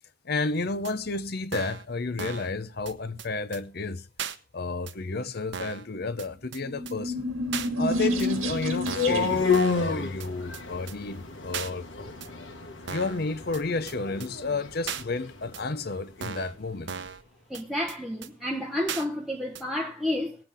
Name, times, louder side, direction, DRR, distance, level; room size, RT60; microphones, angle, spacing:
voice 1, 0.2-4.1 4.5-7.3 7.8-12.5 12.9-16.9, left 3 dB, 50° left, 0.7 m, -31 dB
sound 1, 0.8-0.9 1.5-1.8 2.2-2.5 2.9-3.0 3.2-3.3 3.5-3.6 4.2-4.4 4.9-5.0 5.5-5.8 6.2-6.3 6.5-6.6 6.9-7.0 7.5-7.7 8.2-8.3 8.9-9.2 9.5-9.9 10.2-10.3 10.5-10.6 10.9-11.0 11.5-11.7 12.2-12.3 12.9-13.2 13.5-13.6 13.9-14.0 14.2-14.3 14.9-15.0 15.5-15.6 16.2-16.5 16.9-17.2 17.5-17.6 17.9-18.0 18.2-18.3 18.9-19.0 19.5-19.6, right 7 dB, 55° right, 0.9 m, -36 dB
sound 2, 6.6-9.6, left 1 dB, 85° right, 1.8 m, -29 dB
sound 3, 7.9-15.9, left 5 dB, 65° left, 1.8 m, -31 dB
voice 2, 17.5-20.4, left 1 dB, ahead, 0.8 m, -30 dB
20.0 x 7.8 x 3.5 m
head